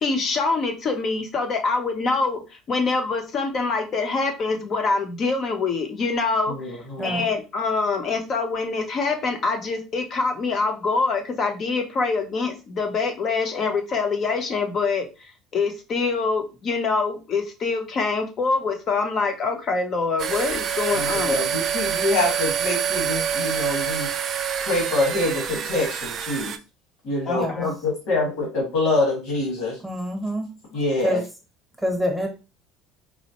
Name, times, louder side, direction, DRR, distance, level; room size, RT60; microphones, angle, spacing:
voice 1, 0.0-21.4 27.3-27.6, left 4 dB, 40° left, 5 dB, 0.8 m, -25 dB
voice 2, 6.5-7.2 20.9-24.1 24.6-26.5 27.0-29.8 30.7-31.2, left 2 dB, 80° left, -2 dB, 1.6 m, -25 dB
sound 1, 20.2-26.6, right 8 dB, 40° right, 0.3 m, -26 dB
voice 3, 29.8-30.5 31.0-31.2 31.8-32.3, equal, ahead, 1 dB, 1.1 m, -26 dB
4.2 x 2.1 x 2.9 m, 0.30 s
cardioid pair, 130°, 0 cm